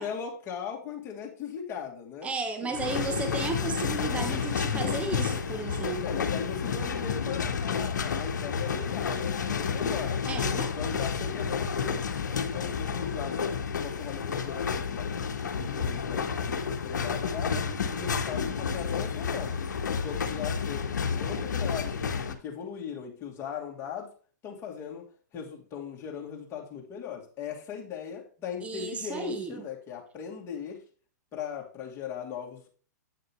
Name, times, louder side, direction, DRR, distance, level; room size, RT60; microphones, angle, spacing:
voice 1, 0.0-2.3 2.6-2.8 3.7-3.9 4.1-5.2 6.0-10.2 10.7-12.1 12.4-13.5 13.8-19.6 19.9-22.0 22.3-24.1 24.4-30.8 31.3-32.7, left 7 dB, 25° left, -2 dB, 2.6 m, -39 dB
voice 2, 2.2-6.0 10.3-10.7 28.6-29.6, right 4 dB, 15° right, 8 dB, 0.8 m, -34 dB
sound 1, 2.7-22.3, left 6 dB, 75° left, 1.1 m, -30 dB
8.6 x 6.5 x 3.1 m, 0.40 s
hypercardioid pair, 125°, 10 cm